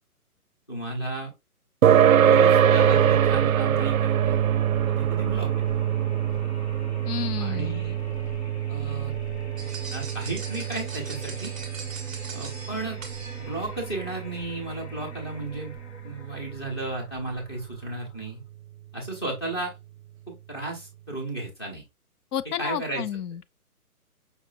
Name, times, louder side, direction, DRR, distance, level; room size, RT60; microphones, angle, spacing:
voice 1, 0.7-1.3 1.8-4.3 4.9-5.5 7.4-8.0 8.7-9.1 9.9-11.5 12.3-13.0 13.4-15.7 16.0-18.4 18.9-19.7 20.3-21.8 22.6-23.0, right 2 dB, 15° left, 1.0 m, -34 dB
sound 1, 1.8-16.7, right 9 dB, 65° right, 0.5 m, -24 dB
sound 2, 2.6-18.5, left 1 dB, 50° left, 1.0 m, -43 dB
voice 2, 7.1-7.8 22.3-23.5, left 10 dB, 85° left, 0.5 m, -31 dB
sound 3, 9.6-13.8, right 4 dB, ahead, 0.6 m, -41 dB
5.6 x 2.8 x 2.5 m
hypercardioid pair, 175°, 45 cm